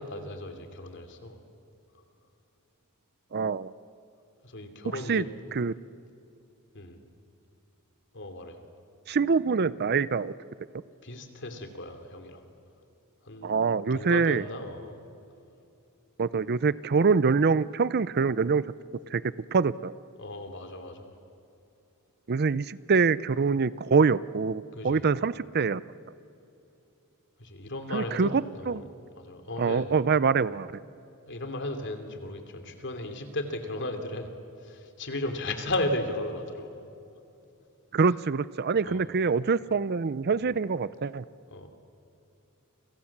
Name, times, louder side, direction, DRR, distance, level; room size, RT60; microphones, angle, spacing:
voice 1, 0.0-1.4 4.4-5.3 6.7-7.0 8.1-8.6 11.0-12.4 13.2-13.6 13.9-15.0 20.2-21.1 24.7-25.0 27.4-28.8 29.2-29.9 31.3-34.3 34.6-36.9 38.8-39.0 41.5-41.7, left 1 dB, 55° left, 6 dB, 3.0 m, -35 dB
voice 2, 3.3-3.7 4.9-5.2 5.5-5.7 9.1-10.3 13.4-14.4 16.2-18.7 19.1-19.2 19.5-19.9 22.3-25.8 27.9-28.8 29.6-30.7 37.9-41.2, right 5 dB, 45° right, 18 dB, 0.5 m, -25 dB
29.5 x 26.5 x 7.4 m, 2.7 s
head